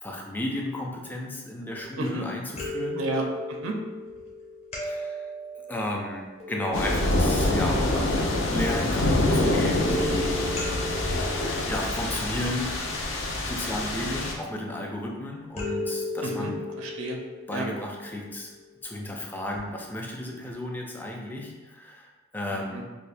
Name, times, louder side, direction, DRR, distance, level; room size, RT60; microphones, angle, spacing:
voice 1, 0.0-3.0 4.8-5.2 5.7-10.6 11.6-12.8 13.5-16.6 17.5-18.5 18.8-22.8, left 1 dB, 10° left, -1 dB, 0.4 m, -33 dB
sound 1, 1.7-2.2 2.5-8.1 9.7-13.0 15.5-18.8 19.5-19.6 20.0-20.1, left 1 dB, 30° left, 0.8 m, -36 dB
voice 2, 3.0-3.8 16.2-16.5 16.8-17.2 17.5-17.7 22.7-22.8, right 2 dB, 80° right, 1 dB, 0.5 m, -31 dB
sound 2, 6.7-14.3, left 1 dB, 65° left, 0.5 m, -26 dB
5.2 x 2.1 x 2.5 m, 1.2 s
head